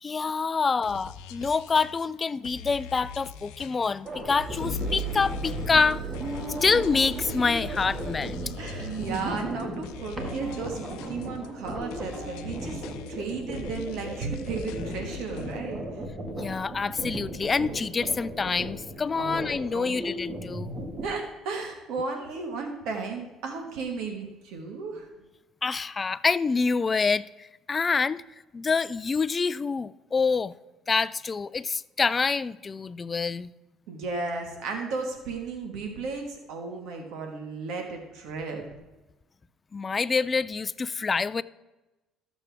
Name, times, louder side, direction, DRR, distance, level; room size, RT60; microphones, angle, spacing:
voice 1, 0.0-6.0 6.6-8.4 16.3-20.7 25.6-28.2 28.5-30.5 30.9-33.5 39.7-41.4, left 4 dB, 25° left, 0.3 m, -26 dB
sound 1, 0.8-15.6, left 8 dB, 85° left, 0.6 m, -43 dB
sound 2, 4.0-21.1, right 1 dB, 30° right, 1.8 m, -36 dB
sound 3, 4.4-9.6, right 2 dB, 50° right, 1.8 m, -37 dB
voice 2, 8.6-12.8 13.1-15.8 19.1-19.4 19.7-19.9 21.0-25.1 33.9-38.6, right 4 dB, 75° right, 1.5 m, -34 dB
14.0 x 7.1 x 3.4 m
cardioid pair, 105°, 0 cm